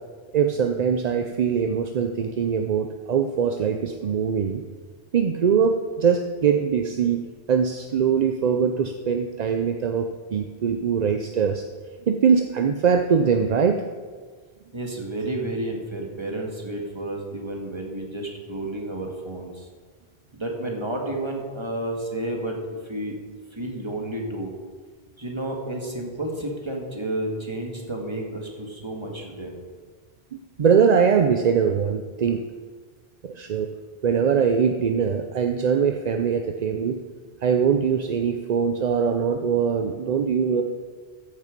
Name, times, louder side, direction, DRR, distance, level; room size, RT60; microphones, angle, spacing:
voice 1, 0.3-4.6 5.1-7.2 7.5-11.6 12.1-13.8 30.6-32.4 33.2-33.7 34.0-37.0 37.4-40.6, right 6 dB, 50° right, 5 dB, 0.6 m, -22 dB
voice 2, 14.7-19.7 20.3-22.6 22.8-23.2 23.5-24.5 25.2-29.6, right 1 dB, 25° right, 0 dB, 1.8 m, -31 dB
14.0 x 6.7 x 5.2 m, 1.5 s
omnidirectional pair, 1.1 m